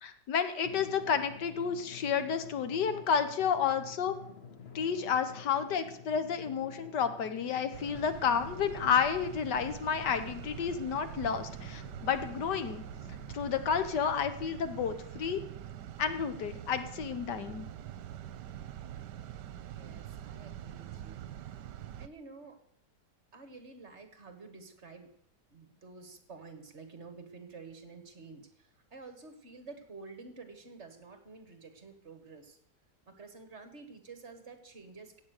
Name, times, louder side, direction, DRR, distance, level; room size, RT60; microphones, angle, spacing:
voice 1, 0.0-4.1 4.7-12.8 13.3-15.4 16.0-17.6, left 7 dB, 80° left, 10 dB, 1.7 m, -31 dB
Drum, 0.6-13.6, left 6 dB, 40° left, 1.2 m, -50 dB
sound 1, 7.7-22.1, right 11 dB, 80° right, 1.3 m, -44 dB
voice 2, 19.6-21.3 22.0-22.6 23.3-25.1 25.5-32.6 33.1-35.2, right 4 dB, 40° right, 8 dB, 1.7 m, -50 dB
16.0 x 8.6 x 6.5 m, 0.69 s
omnidirectional pair, 1.8 m